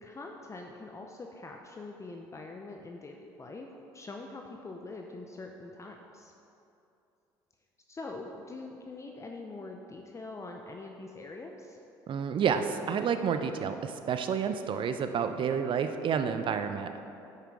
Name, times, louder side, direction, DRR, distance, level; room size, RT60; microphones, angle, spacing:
voice 1, 0.0-3.7 3.9-6.3 7.9-11.8, left 3 dB, 25° left, 2 dB, 0.7 m, -44 dB
voice 2, 12.1-16.9, right 7 dB, 50° right, 8 dB, 0.7 m, -29 dB
8.9 x 5.8 x 4.8 m, 2.8 s
hypercardioid pair, 60°, 11 cm